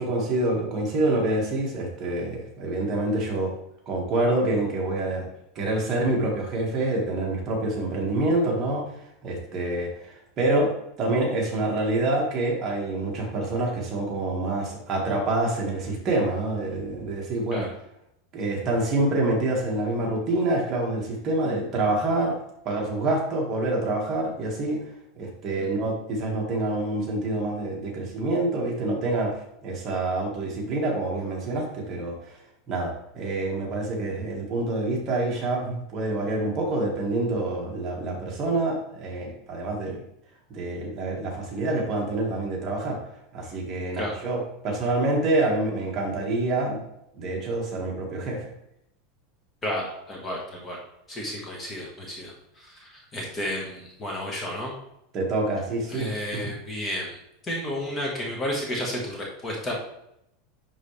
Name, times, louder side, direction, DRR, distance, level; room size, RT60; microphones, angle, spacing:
voice 1, 0.0-3.5 3.9-5.3 5.6-8.9 9.2-10.7 11.0-17.7 18.3-22.4 22.6-24.8 25.1-32.4 32.7-40.0 40.5-43.0 43.3-46.8 47.1-48.5 55.1-56.4, right 2 dB, 30° right, -2 dB, 1.8 m, -26 dB
voice 2, 49.6-50.8 51.1-54.7 55.9-57.2 57.4-59.7, left 1 dB, 15° left, -2 dB, 1.5 m, -32 dB
10.5 x 3.8 x 3.3 m, 0.79 s
supercardioid pair, 160°, 0 cm